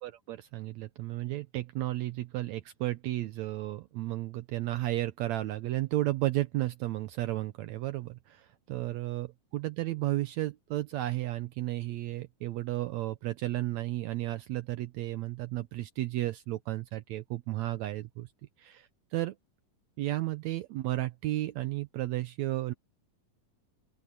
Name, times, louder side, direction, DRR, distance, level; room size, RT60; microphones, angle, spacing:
voice 1, 0.0-18.3 18.6-18.9 19.1-19.3 20.0-22.7, right 16 dB, 75° right, 1.7 m, -33 dB
open air
omnidirectional pair, 3.9 m